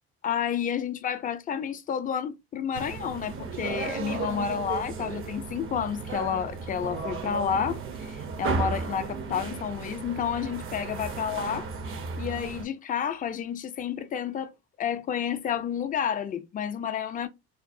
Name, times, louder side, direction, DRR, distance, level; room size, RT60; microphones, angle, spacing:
voice 1, 0.2-11.7 12.2-14.5 14.8-17.3, left 8 dB, 25° left, 0.4 m, -30 dB
sound 1, 2.7-12.7, right 4 dB, 45° right, 0.6 m, -34 dB
2.7 x 2.0 x 2.4 m
supercardioid pair, 75°, 31 cm